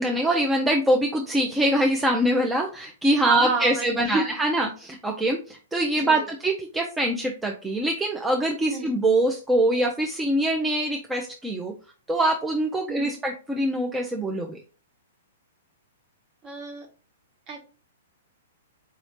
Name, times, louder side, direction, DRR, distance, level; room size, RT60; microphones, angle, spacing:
voice 1, 0.0-11.7 12.1-14.6, right 1 dB, 10° right, 1 dB, 0.6 m, -24 dB
voice 2, 3.2-4.2 6.0-6.3 8.7-9.0 12.9-13.2 16.4-16.9 17.5-17.6, right 3 dB, 30° right, 4 dB, 1.2 m, -30 dB
4.8 x 3.0 x 3.0 m, 0.36 s
figure-of-eight pair, 110°, 0 cm